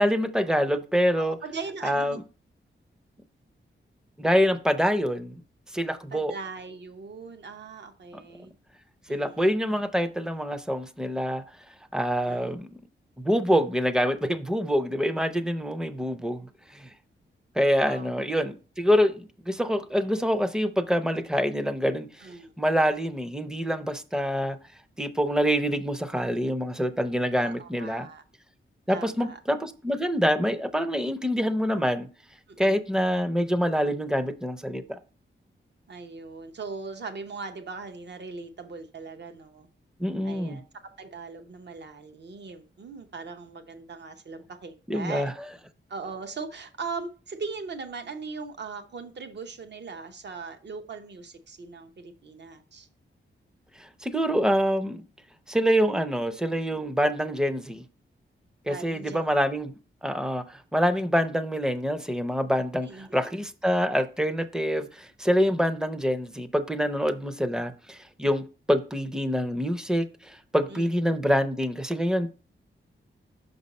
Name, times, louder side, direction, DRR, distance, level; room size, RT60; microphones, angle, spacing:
voice 1, 0.0-1.4 1.8-2.2 4.2-5.4 5.7-6.3 9.1-11.4 11.9-12.7 13.2-16.9 17.6-22.3 22.6-24.6 25.0-28.1 28.9-32.1 32.6-35.0 40.0-40.6 44.9-45.3 53.8-55.0 55.5-57.8 58.7-59.7 60.0-72.3, equal, 5° right, 0.5 m, -26 dB
voice 2, 1.2-2.2 6.1-8.5 9.1-9.4 12.2-12.5 17.8-18.1 22.2-22.5 27.4-28.2 28.9-29.4 32.5-32.8 35.9-39.7 40.2-40.6 41.0-45.3 45.9-52.9 58.6-59.2 62.9-63.3 70.7-71.0, right 4 dB, 60° right, 0.9 m, -39 dB
6.0 x 5.3 x 4.1 m
wide cardioid pair, 130°, 21 cm